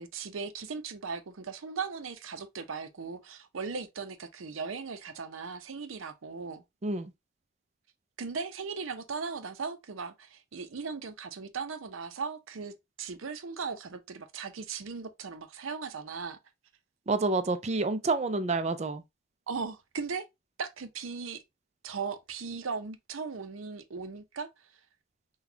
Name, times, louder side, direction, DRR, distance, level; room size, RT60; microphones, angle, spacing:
voice 1, 0.0-6.6 8.2-12.7 13.0-16.4 19.5-20.2 20.6-21.4 21.8-24.5, right 5 dB, 85° right, 0.6 m, -38 dB
voice 2, 6.8-7.1 17.1-19.0, right 3 dB, 35° right, 0.5 m, -28 dB
6.0 x 2.3 x 2.7 m
head